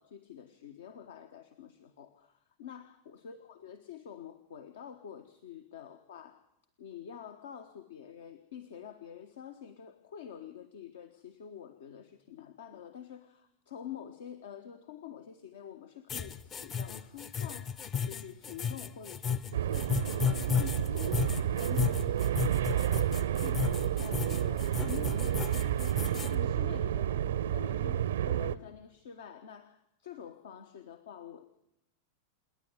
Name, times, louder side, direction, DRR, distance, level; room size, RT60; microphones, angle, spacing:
voice 1, 0.0-6.4 6.8-25.8 26.2-31.4, left 9 dB, 60° left, 9 dB, 1.3 m, -47 dB
sound 1, 16.1-26.3, left 7 dB, 25° left, 0.9 m, -34 dB
sound 2, 19.5-28.5, right 10 dB, 60° right, 0.7 m, -30 dB
28.0 x 10.5 x 9.7 m, 0.79 s
figure-of-eight pair, 90°, 0 cm